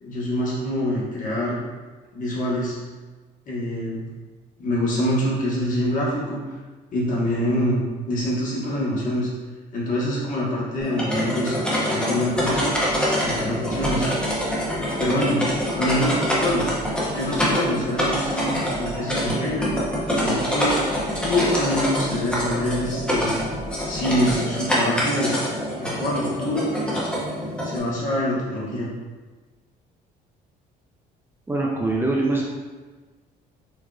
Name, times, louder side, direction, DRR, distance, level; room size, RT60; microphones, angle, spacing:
voice 1, 0.0-1.6 2.1-2.8 3.5-4.0 4.6-6.4 6.9-9.3 9.7-12.7 13.2-14.1 15.0-15.4 15.8-16.6 17.1-19.7 20.2-20.7 21.2-23.4 23.9-25.3 25.8-26.7 27.6-28.9, left 1 dB, 50° left, -6 dB, 1.3 m, -25 dB
sound 1, 10.8-27.8, equal, 5° left, 0.9 m, -25 dB
sound 2, 12.3-24.4, right 3 dB, 85° right, 0.5 m, -40 dB
voice 2, 31.5-32.4, right 2 dB, 15° right, -3 dB, 0.5 m, -23 dB
4.6 x 2.9 x 2.3 m, 1.3 s
cardioid pair, 110°, 17 cm